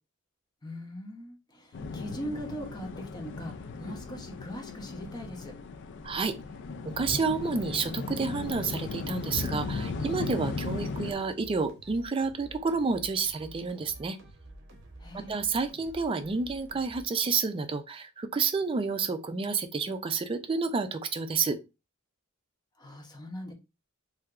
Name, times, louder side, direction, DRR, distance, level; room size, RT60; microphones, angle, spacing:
voice 1, 0.6-5.5 15.0-15.5 22.8-23.5, equal, 20° left, 0.7 m, -40 dB
sound 1, 1.7-11.1, left 4 dB, 60° left, 0.4 m, -37 dB
voice 2, 6.0-6.3 6.8-14.2 15.1-21.6, right 4 dB, 25° right, 0.3 m, -30 dB
sound 2, 9.9-17.1, right 1 dB, 60° right, 0.8 m, -51 dB
3.3 x 2.7 x 2.4 m
head